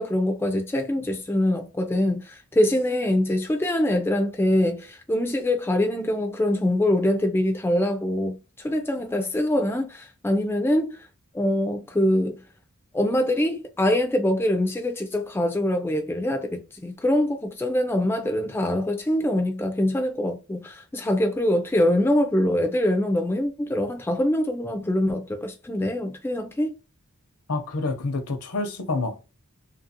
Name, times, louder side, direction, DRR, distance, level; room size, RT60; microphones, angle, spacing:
voice 1, 0.0-11.0 11.3-12.4 12.9-26.7, left 1 dB, 10° left, 0.3 m, -24 dB
voice 2, 27.5-29.3, left 3 dB, 75° left, 0.7 m, -28 dB
2.8 x 2.5 x 2.7 m
head